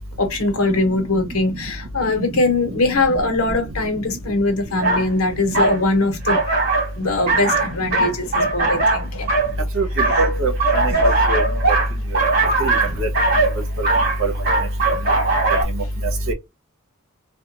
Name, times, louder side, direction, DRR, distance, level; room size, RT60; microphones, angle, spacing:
voice 1, 0.2-6.4 7.0-9.3, left 2 dB, 90° left, 1.0 m, -21 dB
sound 1, 4.8-5.1 5.5-5.8 6.3-6.9 7.3-9.5 10.0-15.6, right 3 dB, 45° right, 1.6 m, -19 dB
voice 2, 10.2-10.5 10.8-11.4 12.1-12.3 12.6-12.7 13.0-13.1 13.8-13.9 14.2-14.3 15.7-15.8 16.3-16.4, right 1 dB, 65° right, 1.0 m, -21 dB
2.9 x 2.5 x 2.5 m
head